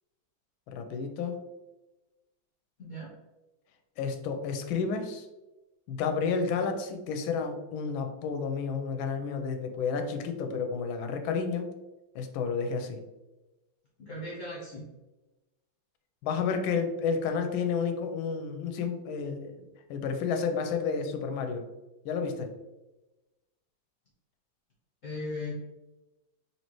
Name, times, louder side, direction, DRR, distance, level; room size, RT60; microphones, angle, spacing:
voice 1, 0.7-1.4 4.0-5.3 5.9-11.7 12.1-13.0 16.2-19.5 19.9-21.7 22.0-22.5, left 5 dB, 90° left, 6 dB, 1.4 m, -31 dB
voice 2, 2.8-3.1 14.0-14.8 25.0-25.5, left 1 dB, 55° left, -5 dB, 1.0 m, -37 dB
4.2 x 3.0 x 2.9 m, 1.1 s
omnidirectional pair, 2.1 m